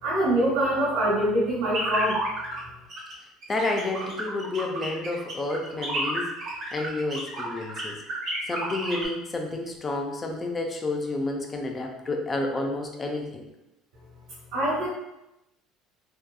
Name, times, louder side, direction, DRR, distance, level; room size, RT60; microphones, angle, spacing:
voice 1, 0.0-2.2 14.5-14.9, right 1 dB, 90° right, -10 dB, 0.9 m, -24 dB
sound 1, 1.7-2.6 2.9-3.1 3.4-9.1, right 1 dB, 40° right, 0.8 m, -31 dB
voice 2, 3.5-6.4 6.7-8.0 8.5-13.5, left 2 dB, 20° left, 2 dB, 0.3 m, -30 dB
2.7 x 2.3 x 2.2 m, 0.91 s
cardioid pair, 155°, 0 cm